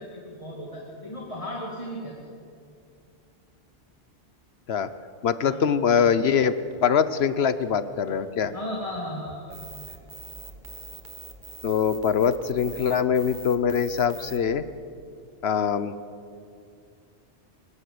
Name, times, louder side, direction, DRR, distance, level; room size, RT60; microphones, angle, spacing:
voice 1, 0.0-2.1 5.4-5.6 8.5-9.6, equal, 30° left, -2 dB, 2.6 m, -35 dB
voice 2, 5.2-6.5 6.8-8.5 11.6-14.6 15.4-15.9, left 7 dB, 75° left, 14 dB, 1.0 m, -23 dB
sound 1, 6.7-6.8 7.2-7.3 7.6-7.7 8.1-8.5 8.9-9.0 9.3-9.6 9.9-10.0 10.3-10.8, equal, 65° right, 3.5 m, -50 dB
sound 2, 9.5-14.4, right 3 dB, 50° right, 1.7 m, -43 dB
24.0 x 14.0 x 8.5 m, 2.4 s
omnidirectional pair, 1.1 m